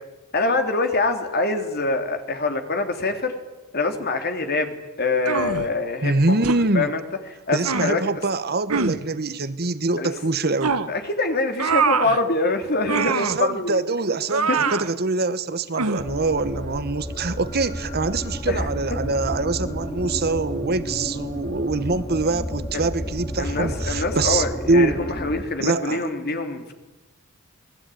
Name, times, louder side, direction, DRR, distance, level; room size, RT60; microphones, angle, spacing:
voice 1, 0.3-3.3 3.7-6.4 6.7-7.0 7.5-8.0 10.0-10.1 10.9-13.8 14.5-14.6 18.5-18.7 22.7-22.8 23.4-26.7, left 3 dB, 45° left, 6 dB, 3.2 m, -24 dB
sound 1, 5.3-5.7 6.4-6.6 7.6-7.9 8.7-9.0 10.6-10.9 11.6-12.2 12.9-13.4 14.3-14.9 15.8-16.1, right 5 dB, 80° right, 1.3 m, -23 dB
voice 2, 6.0-6.9 7.5-10.8 13.0-25.0 25.6-26.1, right 3 dB, 45° right, 13 dB, 1.2 m, -24 dB
sound 2, 16.0-25.4, equal, 20° left, 2.7 m, -31 dB
27.5 x 20.5 x 9.3 m, 1.1 s
head